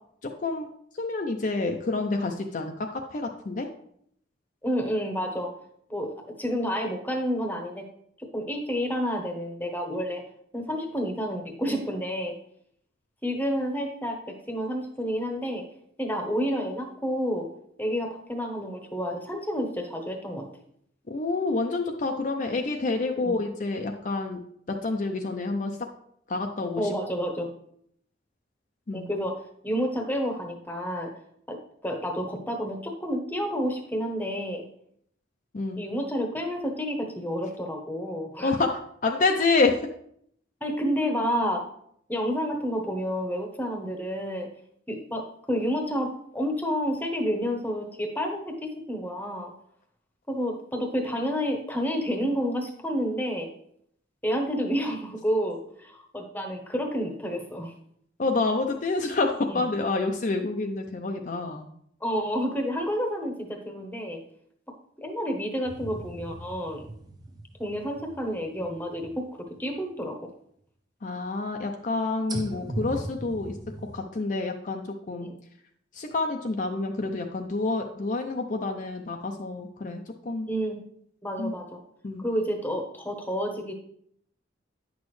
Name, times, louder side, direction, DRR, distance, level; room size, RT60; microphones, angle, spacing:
voice 1, 0.2-0.7 1.0-3.7 21.1-24.4 24.7-25.9 26.3-26.9 28.9-29.1 35.5-35.8 38.4-39.8 58.2-61.7 71.0-73.6 73.9-75.3 75.9-80.5 81.4-81.5 82.0-82.2, left 3 dB, 45° left, 3 dB, 0.5 m, -28 dB
voice 2, 4.6-5.5 5.9-7.8 8.2-10.2 10.5-12.4 13.2-15.6 16.0-17.5 17.8-20.5 23.2-23.4 26.8-27.5 28.9-29.4 29.6-31.1 31.5-34.6 35.8-38.5 40.6-41.6 42.1-44.5 44.9-49.5 50.3-53.5 54.2-57.7 59.5-59.6 62.0-64.2 65.0-66.8 67.6-69.3 69.6-70.3 75.2-75.3 80.5-80.8 81.2-81.8 82.2-83.7, equal, 10° left, 3 dB, 0.9 m, -30 dB
sound 1, 65.6-69.7 70.1-70.2 72.3-74.0, right 1 dB, 20° right, 0.6 m, -39 dB
9.4 x 6.2 x 3.2 m, 0.69 s
head